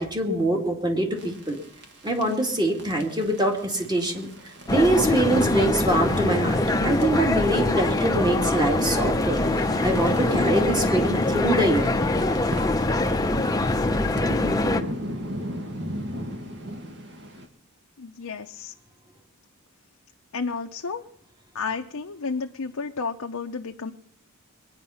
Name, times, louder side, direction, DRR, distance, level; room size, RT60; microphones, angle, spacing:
voice 1, 0.0-1.6 2.0-4.3 4.7-11.9, right 1 dB, 20° right, 3 dB, 2.1 m, -24 dB
sound 1, 1.2-7.2 9.3-17.5, equal, 55° right, 1.8 m, -38 dB
sound 2, 4.7-14.8, left 2 dB, 15° left, 0.7 m, -23 dB
sound 3, 5.3-11.8, right 2 dB, 75° right, 2.8 m, -44 dB
voice 2, 18.0-18.7 20.3-21.1 21.5-23.9, left 4 dB, 75° left, 3 dB, 0.7 m, -31 dB
21.5 x 9.7 x 5.6 m, 0.70 s
head